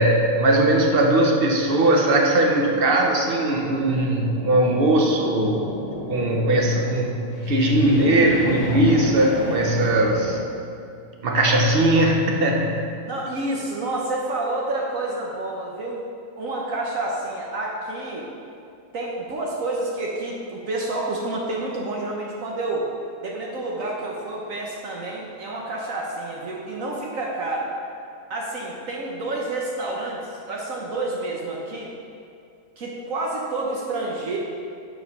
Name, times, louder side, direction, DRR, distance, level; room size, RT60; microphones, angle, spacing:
voice 1, 0.0-5.7 6.1-10.4 11.2-12.7, right 1 dB, 45° right, 0 dB, 0.9 m, -19 dB
sound 1, 3.4-10.4, left 2 dB, 55° left, 0.4 m, -33 dB
voice 2, 13.1-16.0 16.4-18.3 18.9-22.9 23.2-27.7 28.3-31.9 32.8-34.4, right 2 dB, 60° right, -2 dB, 1.1 m, -29 dB
6.7 x 4.7 x 5.4 m, 2.5 s
omnidirectional pair, 1.6 m